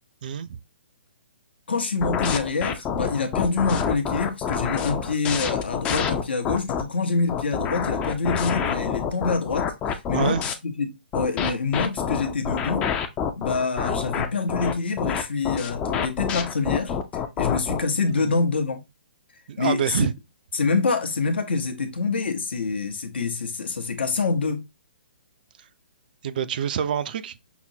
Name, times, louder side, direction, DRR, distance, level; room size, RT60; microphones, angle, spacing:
voice 1, 1.7-10.9 11.1-12.9 13.4-18.8 19.6-20.0 20.5-24.7, left 4 dB, 75° left, 0.9 m, -26 dB
sound 1, 2.0-6.8 7.3-10.5 11.1-17.8, left 7 dB, 20° left, 0.4 m, -27 dB
voice 2, 19.5-20.1 26.2-27.4, right 8 dB, 55° right, 0.4 m, -26 dB
5.8 x 2.0 x 2.7 m
hypercardioid pair, 135°, 6 cm